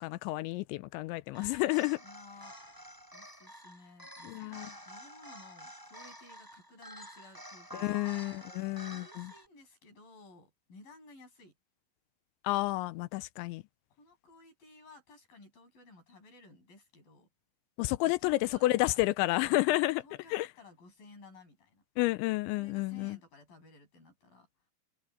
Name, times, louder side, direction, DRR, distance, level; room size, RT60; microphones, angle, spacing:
voice 1, 0.0-2.0 4.2-4.7 7.7-9.3 12.4-13.6 17.8-20.0 20.3-20.5 22.0-23.2, left 19 dB, 85° left, 3.0 m, -30 dB
sound 1, 1.3-9.5, equal, 5° right, 6.9 m, -49 dB
voice 2, 2.0-2.6 3.1-8.1 8.9-11.6 13.9-17.3 18.0-19.0 19.3-21.8 22.5-24.5, left 3 dB, 50° left, 9.3 m, -56 dB
omnidirectional pair, 5.2 m